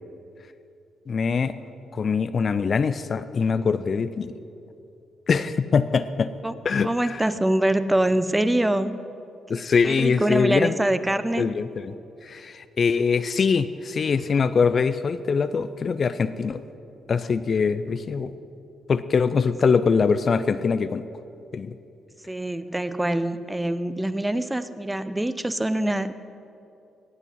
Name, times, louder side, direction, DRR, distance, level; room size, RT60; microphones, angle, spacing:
voice 1, 1.1-1.5 1.9-4.3 5.3-6.3 6.6-7.2 9.5-10.8 11.4-12.0 12.2-16.6 17.1-18.3 18.9-21.0 21.5-21.8, left 5 dB, 50° left, 13 dB, 0.5 m, -23 dB
voice 2, 6.8-9.0 9.8-11.5 22.3-26.1, right 1 dB, 15° right, 13 dB, 0.7 m, -24 dB
17.5 x 8.1 x 5.6 m, 2.6 s
hypercardioid pair, 45°, 0 cm